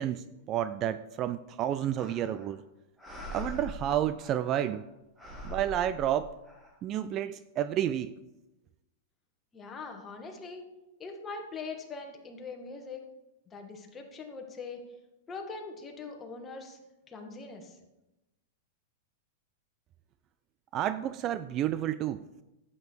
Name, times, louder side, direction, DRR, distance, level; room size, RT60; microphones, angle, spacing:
voice 1, 0.0-2.6 3.3-4.8 5.4-6.3 6.8-8.1 20.7-22.2, right 11 dB, 35° right, 14 dB, 0.4 m, -30 dB
sound 1, 2.0-2.6 3.0-4.8 5.2-6.7, left 2 dB, 10° right, 2.7 m, -43 dB
voice 2, 9.5-10.6 11.0-13.0 13.5-14.8 15.3-16.8 17.1-17.8, left 4 dB, 20° left, 3 dB, 1.9 m, -42 dB
11.5 x 8.6 x 4.7 m, 0.97 s
hypercardioid pair, 135°, 0 cm